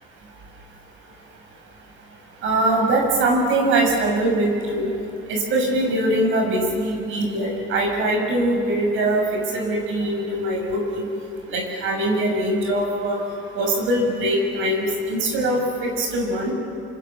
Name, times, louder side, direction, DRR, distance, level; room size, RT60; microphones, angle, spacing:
voice 1, 2.4-4.9 5.3-11.1 11.5-13.2 13.6-16.5, right 1 dB, 85° right, 2 dB, 7.3 m, -22 dB
29.0 x 27.0 x 7.6 m, 2.8 s
cardioid pair, 90°, 20 cm